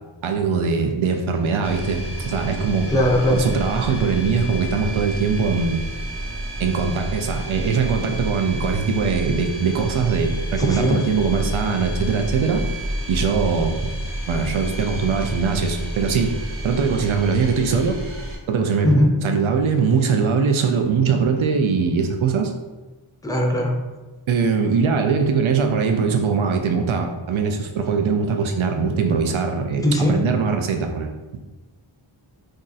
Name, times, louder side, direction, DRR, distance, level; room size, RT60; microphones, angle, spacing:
voice 1, 0.2-2.9 3.3-5.9 6.6-12.6 13.1-13.7 14.3-16.4 16.6-18.0 18.5-18.9 19.2-22.5 24.3-31.1, right 5 dB, 75° right, 4 dB, 0.6 m, -21 dB
sound 1, 1.6-18.4, right 1 dB, 25° right, 1.1 m, -30 dB
voice 2, 2.9-3.5 10.6-11.0 18.8-19.2 23.2-23.8 29.8-30.3, left 1 dB, 10° left, 1 dB, 0.5 m, -19 dB
2.6 x 2.4 x 3.9 m, 1.2 s
wide cardioid pair, 55°, 49 cm